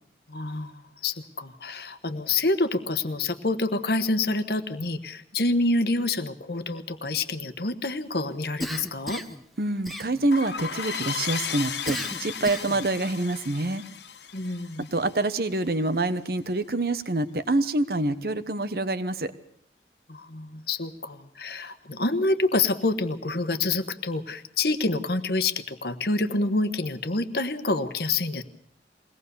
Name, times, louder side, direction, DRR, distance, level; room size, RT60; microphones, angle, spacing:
voice 1, 0.3-9.2 14.3-14.9 20.1-28.4, left 2 dB, 60° left, 10 dB, 1.3 m, -27 dB
Cough, 8.6-9.4 9.8-10.5 11.9-12.9, equal, ahead, 0.9 m, -35 dB
voice 2, 9.6-13.8 14.9-19.3, right 2 dB, 55° right, 12 dB, 1.1 m, -26 dB
sound 1, 10.3-15.6, left 7 dB, 75° left, 1.7 m, -35 dB
22.5 x 18.0 x 6.9 m, 0.66 s
head